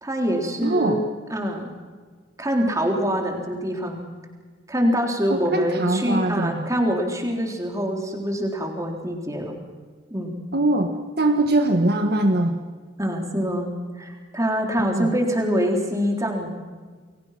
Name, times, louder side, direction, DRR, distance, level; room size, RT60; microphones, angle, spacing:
voice 1, 0.0-1.0 1.3-1.6 2.4-4.0 4.7-9.6 10.1-10.3 13.0-16.5, equal, 15° right, 2 dB, 3.8 m, -25 dB
voice 2, 0.6-1.0 5.3-6.7 10.5-12.6 14.9-15.1, right 1 dB, 50° right, 5 dB, 1.6 m, -22 dB
30.0 x 22.5 x 6.0 m, 1.5 s
head